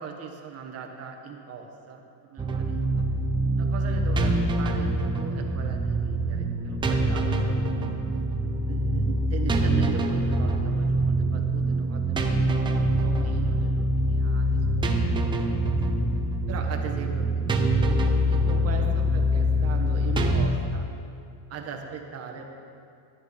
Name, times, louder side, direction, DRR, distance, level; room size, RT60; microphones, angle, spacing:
voice 1, 0.0-3.1 3.6-7.7 8.5-14.6 16.5-20.8 21.5-22.5, right 6 dB, 30° right, 2 dB, 1.2 m, -39 dB
sound 1, 2.4-20.5, right 1 dB, 10° right, 0.4 m, -24 dB
11.5 x 9.1 x 5.3 m, 2.4 s
cardioid pair, 160°, 48 cm